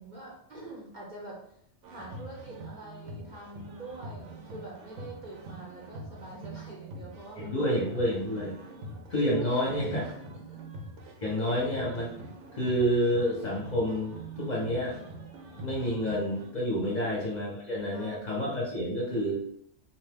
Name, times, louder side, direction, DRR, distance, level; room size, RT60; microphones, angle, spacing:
voice 1, 0.0-1.5 1.9-8.3 8.6-9.0 9.4-10.6 16.9-17.1 17.9-18.4, right 2 dB, 50° right, -3 dB, 0.6 m, -45 dB
sound 1, 1.8-16.5, right 1 dB, 75° right, 0.9 m, -44 dB
voice 2, 7.4-8.6 9.1-10.0 11.2-12.1 12.5-15.0 15.6-19.4, equal, 45° left, -3 dB, 0.7 m, -29 dB
2.7 x 2.2 x 3.4 m, 0.67 s
omnidirectional pair, 1.2 m